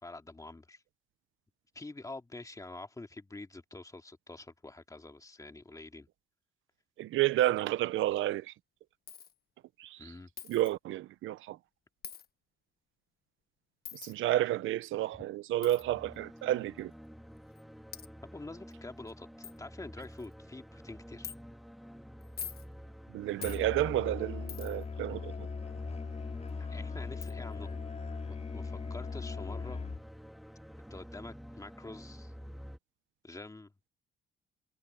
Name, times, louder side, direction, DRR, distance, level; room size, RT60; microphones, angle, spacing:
voice 1, 0.0-0.8 1.7-6.1 10.0-10.3 18.2-21.3 26.6-29.8 30.9-32.3 33.2-33.7, left 2 dB, 15° left, 2.5 m, -47 dB
voice 2, 7.0-8.5 9.8-10.1 10.5-11.6 13.9-16.9 23.1-25.5, right 14 dB, 80° right, 0.8 m, -31 dB
Coin (dropping), 9.1-9.3 10.4-10.7 12.0-12.3 13.8-14.1 15.6-15.8 16.8-16.9 17.6-17.7 17.9-18.1 18.7-18.8 19.1-19.2 19.4-19.6 20.0-20.3 21.2-21.4 22.2-22.7 23.4-23.6 24.5-24.8 26.5-26.6 27.2-27.3, left 8 dB, 50° left, 1.4 m, -44 dB
sound 1, 15.8-32.8, equal, ahead, 2.8 m, -50 dB
Musical instrument, 23.4-30.2, left 4 dB, 35° left, 5.2 m, -39 dB
cardioid pair, 90°, 20 cm